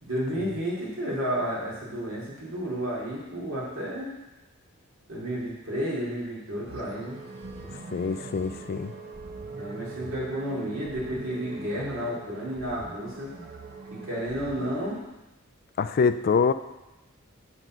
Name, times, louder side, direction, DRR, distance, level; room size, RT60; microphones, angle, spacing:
voice 1, 0.0-4.1 5.1-7.2 9.6-13.3 13.9-15.0, equal, 65° right, -6 dB, 2.6 m, -32 dB
sound 1, 6.7-15.0, right 3 dB, 50° right, 0.9 m, -41 dB
voice 2, 7.9-8.9 15.8-16.5, left 5 dB, 45° left, 12 dB, 0.3 m, -25 dB
7.5 x 3.9 x 6.1 m, 1.0 s
head